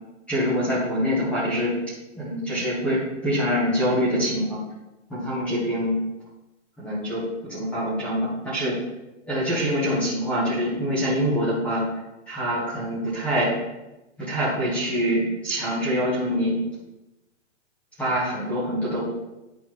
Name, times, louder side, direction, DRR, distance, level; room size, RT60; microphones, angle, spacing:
voice 1, 0.3-1.7 2.1-4.6 5.1-6.0 6.8-8.7 9.3-11.8 12.3-13.5 14.2-16.6 18.0-19.0, equal, 5° left, -9 dB, 0.6 m, -25 dB
9.9 x 4.4 x 2.9 m, 0.99 s
hypercardioid pair, 165°, 37 cm